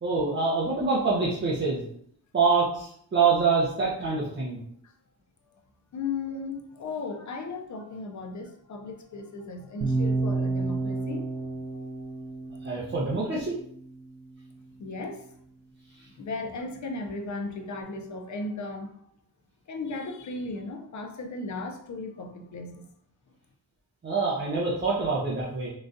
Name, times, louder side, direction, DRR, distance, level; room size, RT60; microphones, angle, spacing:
voice 1, 0.0-1.8 2.3-4.6 12.6-13.5 24.0-25.7, right 4 dB, 30° right, -5 dB, 0.6 m, -25 dB
voice 2, 5.9-12.1 14.8-15.3 16.2-18.9 19.7-22.9, left 3 dB, 50° left, 4 dB, 0.5 m, -36 dB
sound 1, 9.8-13.9, right 3 dB, 70° right, 0.8 m, -30 dB
3.9 x 2.3 x 2.5 m, 0.64 s
wide cardioid pair, 150°, 40 cm